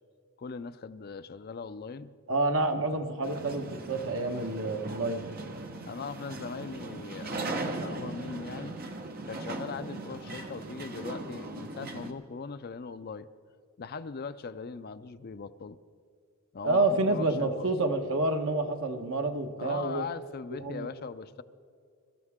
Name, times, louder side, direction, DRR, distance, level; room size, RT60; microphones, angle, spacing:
voice 1, 0.4-2.1 5.8-8.7 9.2-13.3 13.8-15.8 16.5-17.7 19.6-21.4, left 4 dB, 45° left, 12 dB, 0.5 m, -40 dB
voice 2, 2.3-5.4 16.6-20.1 20.6-20.9, right 2 dB, 65° right, 5 dB, 1.3 m, -28 dB
sound 1, 3.2-12.1, right 2 dB, 45° right, 1.2 m, -39 dB
23.5 x 13.5 x 3.7 m, 2.3 s
head